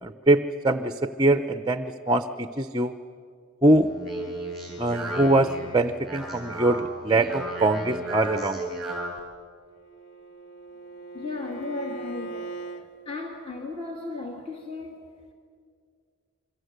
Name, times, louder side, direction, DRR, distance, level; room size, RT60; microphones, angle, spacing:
voice 1, 0.0-2.9 3.6-3.9 4.8-8.6, right 2 dB, 20° right, 9 dB, 0.6 m, -23 dB
Speech, 3.8-9.2, right 2 dB, ahead, 6.9 m, -35 dB
Bowed string instrument, 9.7-12.9, right 4 dB, 60° left, 1.8 m, -40 dB
voice 2, 11.1-12.6 13.1-15.0, left 3 dB, 25° left, 1 dB, 2.1 m, -35 dB
27.5 x 24.0 x 8.0 m, 2.2 s
head